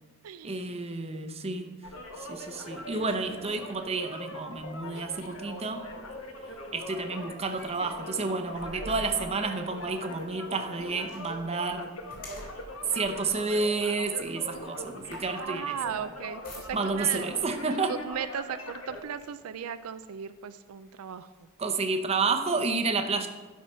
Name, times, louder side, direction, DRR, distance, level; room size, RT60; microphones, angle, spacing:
voice 1, 0.4-1.7 2.2-5.9 6.7-11.9 12.8-15.8 16.7-18.0 21.6-23.3, right 4 dB, 30° right, 6 dB, 0.7 m, -30 dB
sound 1, 1.8-19.0, left 1 dB, 65° left, 1.3 m, -41 dB
sound 2, 4.3-17.1 18.0-18.2 18.6-19.6 20.2-20.3 20.8-22.4, equal, 45° left, 3.0 m, -51 dB
voice 2, 15.4-17.3 17.9-21.5, right 8 dB, 85° right, 11 dB, 0.4 m, -37 dB
12.0 x 5.7 x 5.6 m, 1.3 s
head